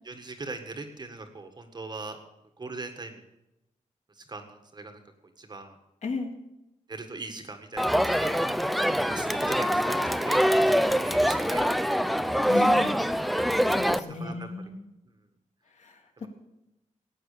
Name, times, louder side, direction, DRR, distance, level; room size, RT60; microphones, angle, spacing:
voice 1, 0.0-2.2 2.6-3.2 4.2-5.0 5.4-5.8 6.9-8.5 9.0-11.7 12.5-13.1 14.2-14.5 16.2-16.3, right 3 dB, 30° right, 6 dB, 1.7 m, -40 dB
voice 2, 6.0-6.3 12.4-13.0 13.7-14.9 15.8-15.9, left 3 dB, 60° left, 3 dB, 2.3 m, -34 dB
Crowd, 7.8-14.0, equal, ahead, 0.5 m, -24 dB
17.5 x 9.0 x 6.8 m, 0.89 s
wide cardioid pair, 145°, 14 cm